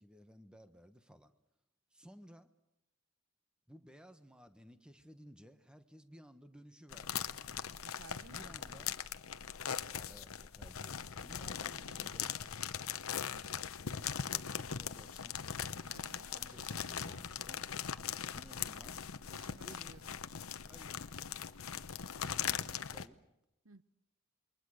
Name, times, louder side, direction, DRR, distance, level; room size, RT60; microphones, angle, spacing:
voice 1, 0.0-1.3 1.9-2.5 3.7-7.3 8.3-9.0 10.1-12.4 14.2-15.4 16.3-17.6 18.3-19.0 19.5-20.0 20.6-21.1 22.2-23.2, equal, 5° right, 1.2 m, -57 dB
sound 1, 6.9-23.1, left 8 dB, 85° left, 0.9 m, -40 dB
voice 2, 7.8-8.8 15.9-17.3 19.3-20.1 23.6-23.8, right 4 dB, 80° right, 0.9 m, -57 dB
28.0 x 23.0 x 6.5 m
head